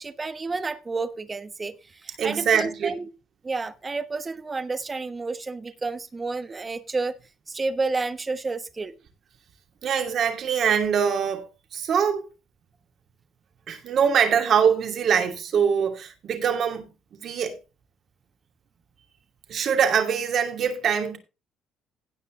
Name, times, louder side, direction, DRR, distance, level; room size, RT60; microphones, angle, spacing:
voice 1, 0.0-3.1 3.4-7.1 7.5-8.9, right 3 dB, 25° right, 1.3 m, -30 dB
voice 2, 2.2-2.9 9.8-12.3 13.7-17.6 19.5-21.2, right 7 dB, 55° right, 2.6 m, -23 dB
17.0 x 5.7 x 3.8 m
supercardioid pair, 85°, 0 cm